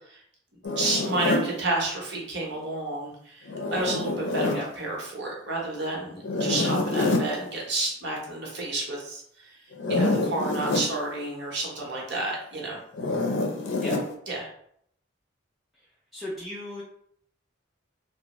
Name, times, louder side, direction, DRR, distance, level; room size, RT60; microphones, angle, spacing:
Zipper (clothing), 0.6-1.5 3.5-4.6 6.2-7.3 9.7-10.9 12.9-14.1, left 2 dB, 65° left, 0.5 m, -26 dB
voice 1, 0.8-9.2 9.9-12.8 14.3-14.5, right 2 dB, 60° right, -2 dB, 0.9 m, -30 dB
voice 2, 16.1-16.8, left 1 dB, ahead, -6 dB, 0.3 m, -35 dB
3.0 x 2.0 x 2.9 m, 0.69 s
head